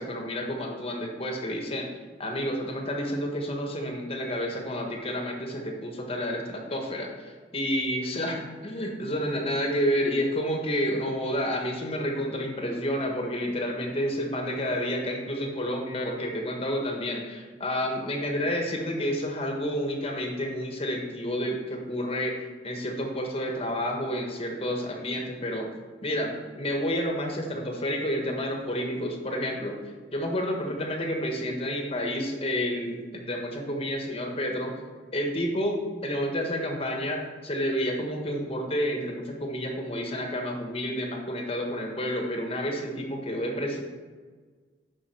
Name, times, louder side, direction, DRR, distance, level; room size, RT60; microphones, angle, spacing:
voice 1, 0.0-1.9 2.2-25.7 26.0-29.8 30.1-34.7 35.1-43.8, equal, 35° left, 2 dB, 1.4 m, -30 dB
7.5 x 5.6 x 6.2 m, 1.5 s
head